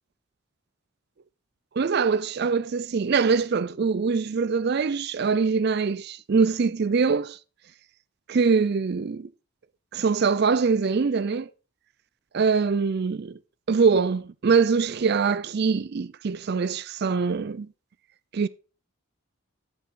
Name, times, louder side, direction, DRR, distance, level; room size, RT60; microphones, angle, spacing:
voice 1, 1.8-7.4 8.3-9.3 9.9-11.5 12.3-13.4 13.7-17.7 18.3-18.5, right 5 dB, 45° right, 0.4 m, -23 dB
9.8 x 7.0 x 4.2 m
head